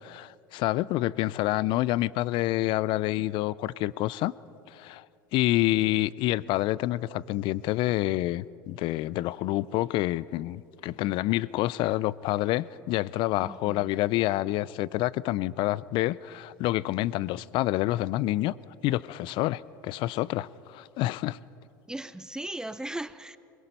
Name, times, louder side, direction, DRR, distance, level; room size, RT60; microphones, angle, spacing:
voice 1, 0.0-4.3 4.7-5.0 5.3-18.6 18.8-21.4, left 16 dB, 50° left, 21 dB, 0.5 m, -28 dB
voice 2, 13.4-13.9 21.9-23.4, right 1 dB, 5° right, 14 dB, 0.6 m, -37 dB
23.0 x 21.5 x 5.4 m, 2.6 s
hypercardioid pair, 80°, 11 cm